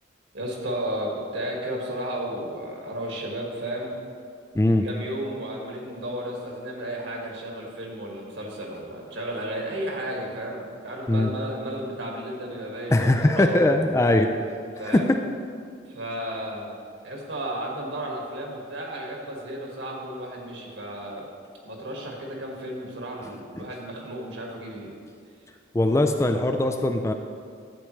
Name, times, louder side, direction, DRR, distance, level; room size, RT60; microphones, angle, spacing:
voice 1, 0.3-4.0 4.6-13.5 14.8-15.1 15.9-16.7 17.0-21.3 21.6-24.9, right 1 dB, 70° right, -1 dB, 1.9 m, -33 dB
voice 2, 4.5-4.9 11.1-11.3 12.9-14.3 14.9-15.2 25.7-27.1, left 1 dB, 15° left, 5 dB, 0.3 m, -20 dB
12.0 x 8.7 x 3.2 m, 2.3 s
head